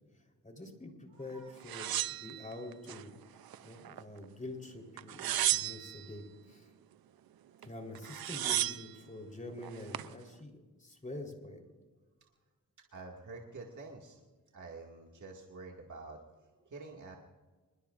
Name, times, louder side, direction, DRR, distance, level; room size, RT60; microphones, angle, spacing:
voice 1, 0.4-3.1 3.6-6.7 7.6-11.6, left 1 dB, 20° left, 2 dB, 4.0 m, -46 dB
voice 2, 1.1-1.5 3.5-3.6 12.2-12.3 12.9-14.2 14.5-17.2, right 3 dB, 55° right, -1 dB, 2.2 m, -48 dB
sound 1, 1.7-3.0 3.5-4.2 5.0-6.1 7.6-7.7 7.9-8.9 9.6-10.1, right 12 dB, 85° right, 0.6 m, -34 dB
25.5 x 22.0 x 2.6 m, 1.3 s
cardioid pair, 85°, 35 cm